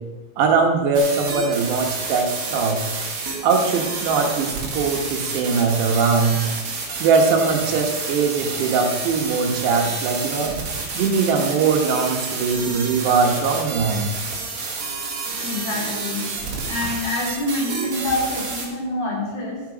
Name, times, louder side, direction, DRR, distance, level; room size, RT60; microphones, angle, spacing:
voice 1, 0.4-2.8 3.4-6.4 7.0-10.5 10.9-14.1, right 4 dB, 75° right, 2 dB, 3.2 m, -21 dB
sound 1, 0.9-18.7, right 4 dB, 50° right, 2.5 m, -29 dB
voice 2, 15.4-16.3 16.7-19.6, left 2 dB, 60° left, -4 dB, 4.8 m, -26 dB
12.5 x 9.1 x 4.9 m, 1.2 s
omnidirectional pair, 5.1 m